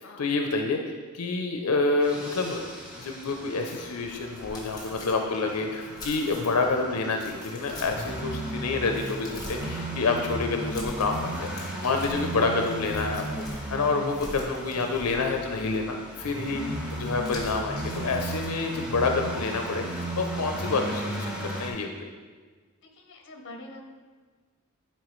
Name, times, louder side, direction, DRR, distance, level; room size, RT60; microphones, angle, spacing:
voice 1, 0.2-0.8 1.1-2.6 3.0-16.6 17.0-22.1, left 3 dB, 85° left, 3 dB, 0.6 m, -28 dB
sound 1, 2.0-21.7, right 1 dB, 5° right, 1.1 m, -36 dB
sound 2, 4.0-6.7 7.2-8.2 8.6-9.8 10.6-13.7 14.1-15.5 16.9-18.5, left 1 dB, 15° left, 1.2 m, -44 dB
voice 2, 22.8-23.8, left 1 dB, 55° left, 4 dB, 0.8 m, -44 dB
10.5 x 4.4 x 3.1 m, 1.5 s
head